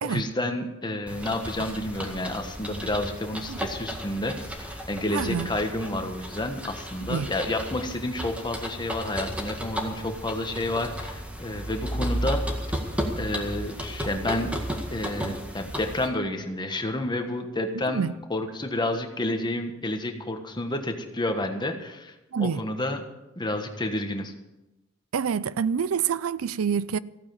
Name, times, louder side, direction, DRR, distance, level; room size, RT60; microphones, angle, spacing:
voice 1, 0.0-12.4 13.2-14.5 14.9-23.1 23.4-24.3, left 1 dB, 20° left, 1.4 m, -30 dB
sound 1, 1.1-16.1, equal, 5° right, 1.8 m, -34 dB
voice 2, 5.1-5.5 7.1-7.3 17.9-18.1 22.3-22.6 25.1-27.0, right 6 dB, 85° right, 0.5 m, -26 dB
15.0 x 8.8 x 7.0 m
head